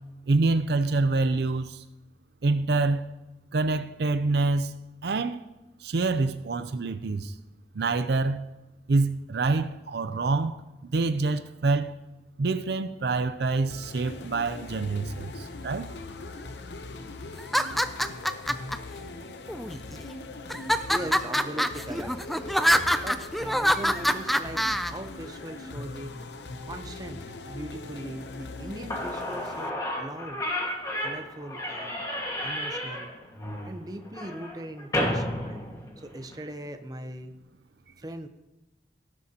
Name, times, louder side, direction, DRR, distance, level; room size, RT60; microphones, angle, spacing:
voice 1, 0.3-1.8 2.4-3.0 3.5-5.4 5.8-7.3 7.8-8.4 8.9-10.6 10.9-12.0 12.4-15.9, right 3 dB, 70° right, 0.5 m, -26 dB
sound 1, 13.7-29.7, left 2 dB, 75° left, 0.8 m, -41 dB
sound 2, 17.4-18.8 19.5-20.0 20.5-24.9, equal, ahead, 0.4 m, -25 dB
voice 2, 20.5-22.2 23.0-26.2 26.7-30.4 31.0-32.1 32.4-33.1 33.6-35.6 36.0-37.4 38.0-38.3, right 1 dB, 20° right, 0.8 m, -40 dB
Slam / Squeak, 28.6-28.7 28.9-36.4, left 1 dB, 20° left, 1.7 m, -32 dB
17.5 x 9.9 x 2.9 m
head